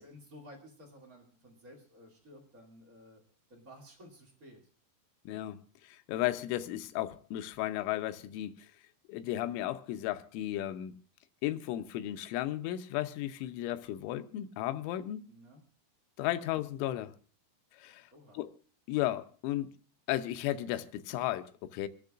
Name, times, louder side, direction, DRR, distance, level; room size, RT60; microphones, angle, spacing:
voice 1, 0.0-3.2 3.5-4.6 15.3-15.6 18.1-18.4, equal, 55° right, 0.9 m, -54 dB
voice 2, 5.3-8.7 9.1-10.9 11.4-15.2 16.2-17.1 17.7-18.1 18.3-18.5 18.9-19.7 20.1-21.9, left 14 dB, 80° left, 2.9 m, -34 dB
27.0 x 10.5 x 2.5 m
omnidirectional pair, 5.9 m